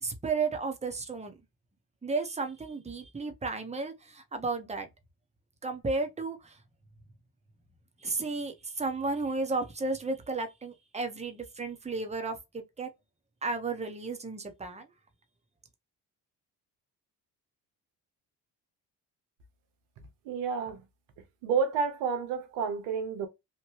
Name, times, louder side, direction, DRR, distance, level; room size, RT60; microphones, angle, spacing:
voice 1, 0.0-1.3 2.0-4.9 5.6-6.6 8.0-12.9 13.4-14.9, right 3 dB, 15° right, 0.8 m, -33 dB
voice 2, 20.3-20.8 21.4-23.3, right 6 dB, 85° right, 0.8 m, -30 dB
3.0 x 2.1 x 3.0 m
supercardioid pair, 55°, 44 cm